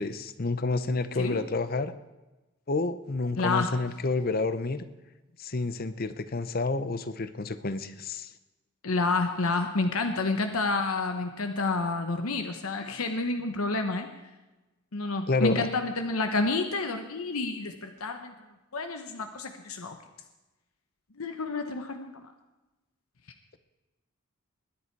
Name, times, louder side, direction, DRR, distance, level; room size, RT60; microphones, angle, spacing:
voice 1, 0.0-1.9 2.7-4.9 5.4-8.3 15.3-15.7, left 3 dB, 45° left, 13 dB, 0.8 m, -29 dB
voice 2, 3.4-3.8 8.8-14.1 14.9-18.3 18.7-20.0 21.2-22.2, left 3 dB, 75° left, 6 dB, 1.0 m, -29 dB
21.0 x 10.0 x 4.6 m, 1.1 s
head